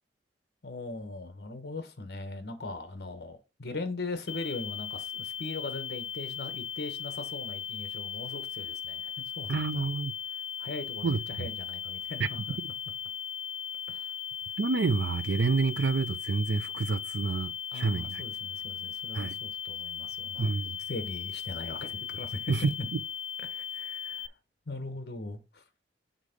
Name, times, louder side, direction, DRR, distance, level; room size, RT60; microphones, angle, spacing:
voice 1, 0.6-9.8 10.6-12.6 13.9-14.0 17.7-20.5 20.9-22.5 22.8-22.9 23.4-24.3 24.7-25.6, left 2 dB, 60° left, 1.1 m, -40 dB
sound 1, 4.3-24.3, left 9 dB, 80° left, 0.3 m, -38 dB
voice 2, 9.5-10.1 11.0-11.5 12.2-12.3 14.6-18.2 19.1-19.3 20.4-20.8 22.5-22.6, right 4 dB, 75° right, 0.5 m, -29 dB
6.6 x 3.7 x 5.1 m
head